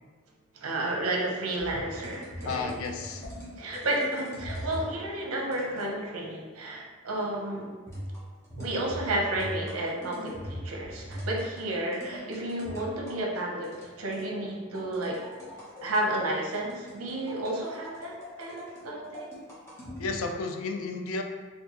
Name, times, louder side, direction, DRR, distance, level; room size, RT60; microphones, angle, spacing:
voice 1, 0.5-2.7 3.6-7.7 8.6-15.2 15.8-19.3, right 1 dB, 75° right, -1 dB, 0.7 m, -32 dB
sound 1, 1.6-4.9 5.5-6.0 7.9-13.2 13.6-14.3 14.7-16.0 16.5-20.2, equal, 10° left, 0.9 m, -40 dB
voice 2, 2.4-3.2 20.0-21.2, left 4 dB, 70° left, 4 dB, 0.4 m, -32 dB
4.3 x 2.3 x 2.8 m, 1.4 s
head